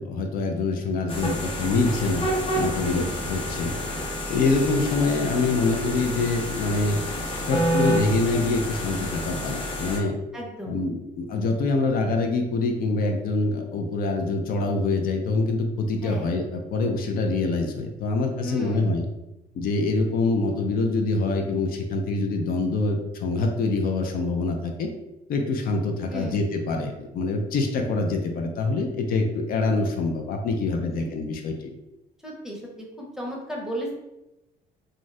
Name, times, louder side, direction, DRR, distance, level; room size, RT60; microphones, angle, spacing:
voice 1, 0.0-2.3 2.6-3.7 4.3-7.0 7.5-10.2 10.7-19.1 19.6-24.9 25.3-31.7, left 3 dB, 60° left, 3 dB, 0.5 m, -25 dB
sound 1, 1.1-10.0, equal, 30° left, 0.9 m, -29 dB
voice 2, 2.8-3.2 10.3-10.8 16.0-16.3 18.4-19.0 26.1-26.4 30.8-31.1 32.2-33.9, equal, 5° right, -2 dB, 0.7 m, -35 dB
2.6 x 2.3 x 3.1 m, 0.96 s
cardioid pair, 110°, 17 cm